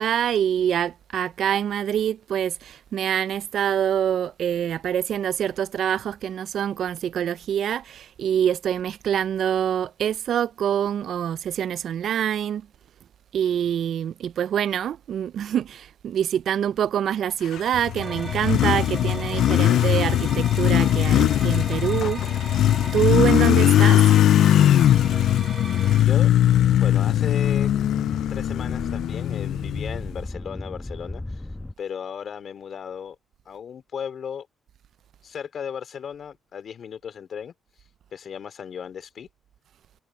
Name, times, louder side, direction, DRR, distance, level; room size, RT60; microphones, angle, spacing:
voice 1, 0.0-12.7 13.3-22.2 22.9-24.0, right 9 dB, 65° right, 0.3 m, -25 dB
Motorcycle, 17.6-30.2, left 12 dB, 75° left, 0.3 m, -20 dB
sound 1, 18.0-26.1, right 4 dB, 30° right, 0.6 m, -38 dB
voice 2, 26.0-26.3 26.8-27.7 28.3-31.4 31.8-33.2 33.5-34.5 35.2-37.5 38.1-39.3, left 7 dB, 55° left, 3.7 m, -35 dB
sound 2, 26.4-31.7, left 2 dB, 10° left, 1.0 m, -35 dB
cardioid pair, 90°, 0 cm